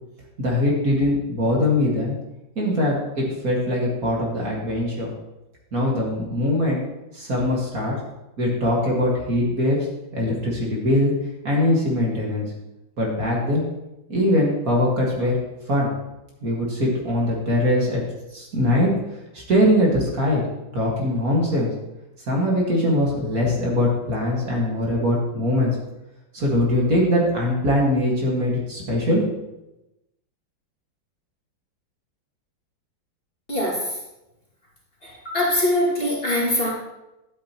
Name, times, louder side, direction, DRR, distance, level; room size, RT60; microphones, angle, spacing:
voice 1, 0.4-2.1 2.6-5.1 5.7-6.8 7.1-7.9 8.4-9.8 10.1-11.1 11.4-12.5 13.0-13.6 14.1-15.4 15.7-15.9 16.4-18.0 18.3-18.9 19.3-20.4 20.7-21.7 22.3-25.7 26.3-29.2, left 1 dB, 45° right, -3 dB, 2.3 m, -21 dB
voice 2, 33.5-33.9 35.0-36.7, left 1 dB, 30° left, -5 dB, 2.5 m, -23 dB
11.5 x 8.7 x 3.0 m, 0.95 s
omnidirectional pair, 2.1 m